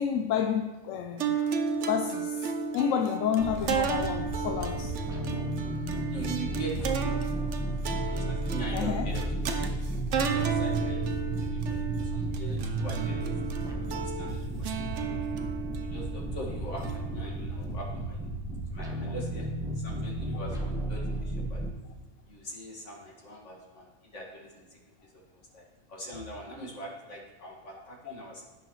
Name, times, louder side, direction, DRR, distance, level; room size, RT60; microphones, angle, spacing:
voice 1, 0.0-1.4 1.9-2.5 2.7-4.9 8.7-9.1 28.1-28.2, left 8 dB, 85° left, 6 dB, 1.0 m, -29 dB
sound 1, 1.2-17.7, right 6 dB, 70° right, 1.1 m, -33 dB
sound 2, 3.4-21.7, right 2 dB, 5° right, 1.1 m, -33 dB
voice 2, 6.1-7.3 7.8-9.8 10.3-13.3 14.0-15.2 15.8-18.2 18.7-19.5 19.7-21.6 22.3-24.6 25.5-25.6 25.9-28.4, right 1 dB, 65° left, -3 dB, 2.4 m, -42 dB
16.0 x 6.3 x 3.1 m, 1.2 s
omnidirectional pair, 1.3 m